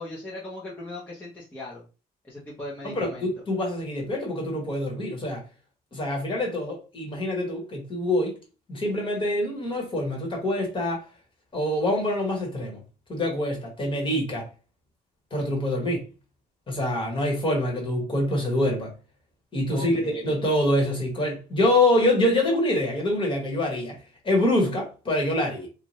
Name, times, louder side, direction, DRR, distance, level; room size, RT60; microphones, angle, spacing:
voice 1, 0.0-1.8 2.2-3.3 19.7-20.3, left 1 dB, 10° left, 0.9 m, -38 dB
voice 2, 2.8-5.4 5.9-8.3 8.7-11.0 11.5-12.8 13.1-14.5 15.3-16.1 16.7-18.9 19.5-23.9 24.2-25.7, left 1 dB, 30° left, 1.4 m, -25 dB
2.7 x 2.4 x 3.0 m
cardioid pair, 110°, 17 cm